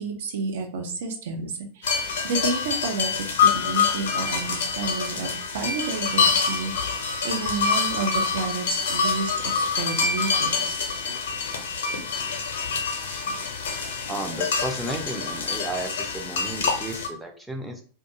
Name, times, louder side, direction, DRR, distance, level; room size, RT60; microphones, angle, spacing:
voice 1, 0.0-6.7 7.2-10.8, right 4 dB, 55° right, 4 dB, 0.5 m, -31 dB
sound 1, 1.8-17.1, left 5 dB, 60° left, 0.6 m, -26 dB
voice 2, 14.1-17.8, right 1 dB, 5° right, 2 dB, 0.5 m, -33 dB
2.3 x 2.3 x 2.8 m, 0.43 s
figure-of-eight pair, 90°, 0 cm